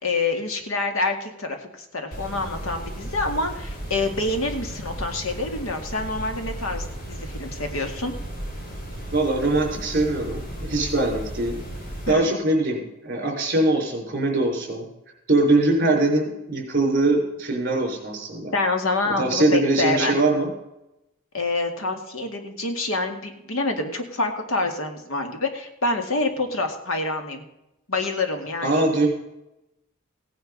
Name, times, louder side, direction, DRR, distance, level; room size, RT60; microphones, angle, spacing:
voice 1, 0.0-8.1 12.1-12.3 18.5-20.1 21.3-27.4 27.9-28.8, left 2 dB, 80° left, 5 dB, 2.2 m, -27 dB
sound 1, 2.1-12.1, right 1 dB, 45° left, 3.7 m, -35 dB
voice 2, 9.1-11.6 12.1-14.8 15.3-18.5 19.2-20.5 28.6-29.1, right 2 dB, 40° right, 1 dB, 4.8 m, -22 dB
16.5 x 9.3 x 5.3 m, 0.89 s
head